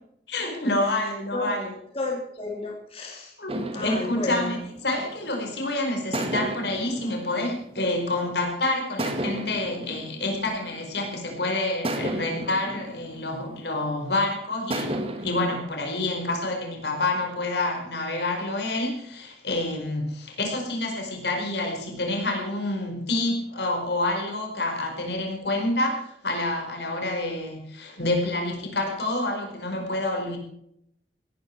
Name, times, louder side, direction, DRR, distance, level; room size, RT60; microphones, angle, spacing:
voice 1, 0.3-1.7 3.4-4.6 4.8-30.4, left 2 dB, 70° left, 3 dB, 4.9 m, -28 dB
voice 2, 1.9-3.3 3.7-4.7, left 2 dB, 35° left, 0 dB, 3.4 m, -32 dB
sound 1, 3.5-5.5 6.1-8.4 9.0-11.2 11.8-14.0 14.7-15.6, right 1 dB, 35° right, 2.0 m, -33 dB
17.5 x 13.0 x 4.6 m, 0.74 s
head